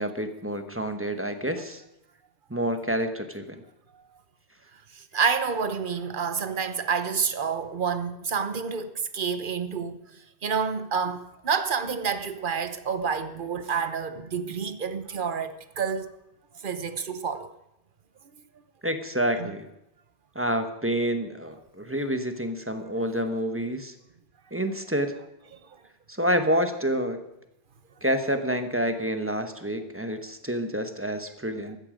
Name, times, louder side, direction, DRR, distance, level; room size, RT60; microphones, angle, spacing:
voice 1, 0.0-1.8 2.5-3.6 18.8-19.7 20.3-23.9 24.5-25.1 26.1-27.2 28.0-31.8, equal, 10° right, 1.1 m, -28 dB
voice 2, 4.9-10.0 10.4-16.0 16.6-17.5 19.4-19.5, right 6 dB, 50° right, 1.1 m, -28 dB
14.5 x 14.0 x 5.1 m
omnidirectional pair, 1.1 m